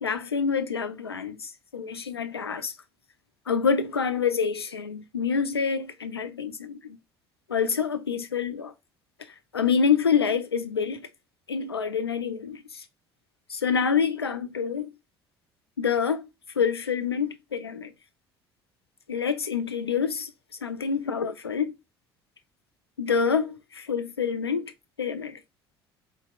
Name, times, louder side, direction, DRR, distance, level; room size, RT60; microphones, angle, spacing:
voice 1, 0.0-2.7 3.5-7.0 7.5-8.7 9.5-11.1 11.5-12.8 13.5-14.9 15.8-16.2 16.6-17.9 19.1-20.3 20.6-21.7 23.0-24.7 25.0-25.4, left 6 dB, 85° left, 0.4 m, -27 dB
4.4 x 2.8 x 2.3 m
figure-of-eight pair, 55°, 13 cm